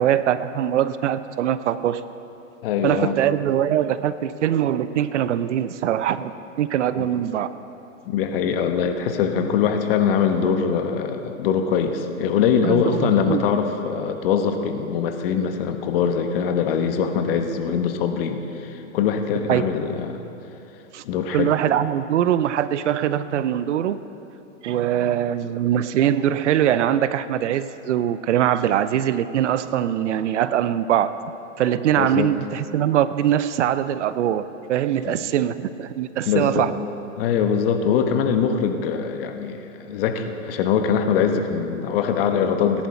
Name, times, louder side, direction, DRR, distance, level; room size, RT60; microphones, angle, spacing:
voice 1, 0.0-2.0 2.8-6.3 6.6-7.5 12.6-13.4 19.5-19.6 20.9-21.0 21.3-24.0 24.6-31.1 31.6-34.4 34.7-36.7, right 10 dB, 65° right, 14 dB, 0.6 m, -22 dB
voice 2, 2.6-3.2 7.0-7.1 8.1-20.2 21.0-21.5 32.0-32.3 35.1-35.2 36.3-36.7 37.2-42.9, left 7 dB, 45° left, 6 dB, 1.2 m, -22 dB
18.0 x 10.5 x 4.4 m, 2.9 s
hypercardioid pair, 135°, 40 cm